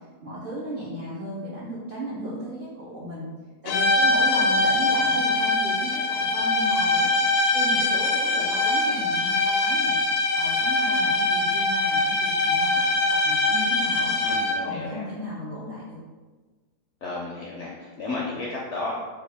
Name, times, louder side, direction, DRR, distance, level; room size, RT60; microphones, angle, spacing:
voice 1, 0.2-3.3 3.6-7.1 7.5-9.9 10.3-14.1 14.6-16.0, equal, 60° right, -8 dB, 0.5 m, -35 dB
sound 1, 3.7-14.8, left 2 dB, 85° left, 1.2 m, -23 dB
voice 2, 14.2-15.1 17.0-18.9, left 2 dB, 70° left, -4 dB, 0.7 m, -33 dB
3.7 x 2.3 x 3.4 m, 1.3 s
omnidirectional pair, 1.7 m